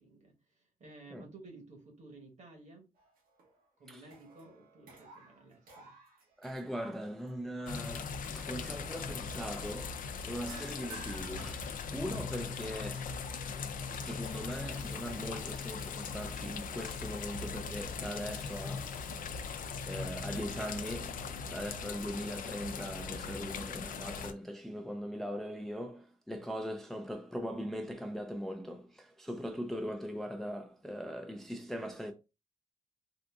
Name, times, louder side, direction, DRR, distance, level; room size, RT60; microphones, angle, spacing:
voice 1, 0.0-2.9 3.8-5.9 25.1-25.2, right 2 dB, 55° right, 1.1 m, -54 dB
sound 1, 3.0-3.7 4.0-7.3 7.8-8.0 10.5-12.4, right 2 dB, 85° right, 1.0 m, -54 dB
voice 2, 6.4-13.2 13.9-19.5 19.8-21.2 21.5-32.1, equal, ahead, 0.4 m, -40 dB
sound 2, 7.7-24.3, left 5 dB, 70° left, 0.4 m, -40 dB
sound 3, 14.7-21.2, left 5 dB, 50° left, 0.8 m, -63 dB
3.8 x 2.5 x 2.3 m
cardioid pair, 105°, 15 cm